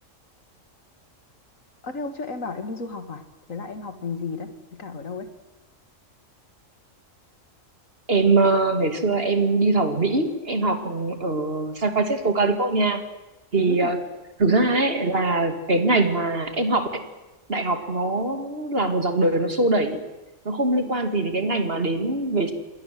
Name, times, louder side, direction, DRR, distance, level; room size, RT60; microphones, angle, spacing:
voice 1, 1.8-3.2 3.5-5.3 13.6-14.0, left 4 dB, 80° left, 9 dB, 2.6 m, -33 dB
voice 2, 8.1-13.0 13.5-14.0 14.4-17.0 17.5-20.0 20.4-22.5, right 2 dB, 45° right, 7 dB, 2.9 m, -22 dB
28.0 x 21.5 x 7.8 m, 1.0 s
omnidirectional pair, 1.4 m